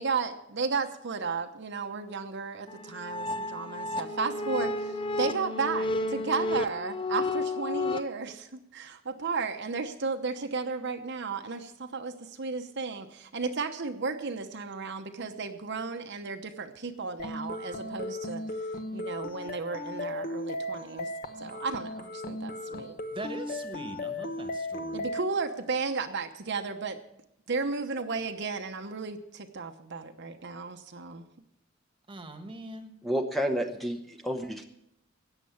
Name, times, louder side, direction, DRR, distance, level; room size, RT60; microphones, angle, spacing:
voice 1, 0.0-21.1 21.4-23.0 24.9-27.0 27.5-31.3, right 4 dB, 60° right, 6 dB, 0.9 m, -34 dB
sound 1, 2.7-8.0, left 2 dB, 25° left, 0.6 m, -32 dB
sound 2, 17.2-25.2, left 1 dB, 45° left, 1.0 m, -36 dB
voice 2, 23.1-25.1 32.1-32.9, right 2 dB, 25° right, 7 dB, 1.4 m, -42 dB
voice 3, 33.0-34.6, equal, ahead, 4 dB, 0.8 m, -30 dB
14.0 x 9.1 x 7.1 m, 0.77 s
head